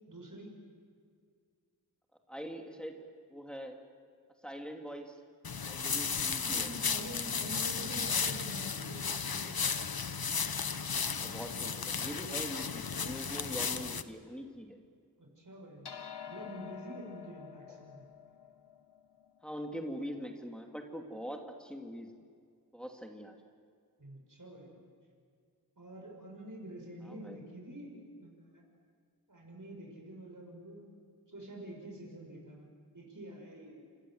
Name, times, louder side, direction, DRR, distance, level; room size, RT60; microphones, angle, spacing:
voice 1, 0.1-0.5 6.4-9.7 15.2-15.9 16.3-18.1 24.0-24.8 25.8-28.6 29.3-30.9 31.3-32.7 32.9-33.8, right 1 dB, 50° right, 1 dB, 6.6 m, -47 dB
voice 2, 2.3-3.8 4.4-5.2 5.7-6.7 11.2-14.8 19.4-22.1 22.7-23.4 27.0-27.4, equal, ahead, 2 dB, 2.8 m, -43 dB
sound 1, 5.4-14.0, left 6 dB, 65° left, 1.2 m, -34 dB
sound 2, 15.8-20.5, left 8 dB, 90° left, 1.2 m, -49 dB
28.5 x 25.5 x 7.9 m, 2.1 s
wide cardioid pair, 45°, 39 cm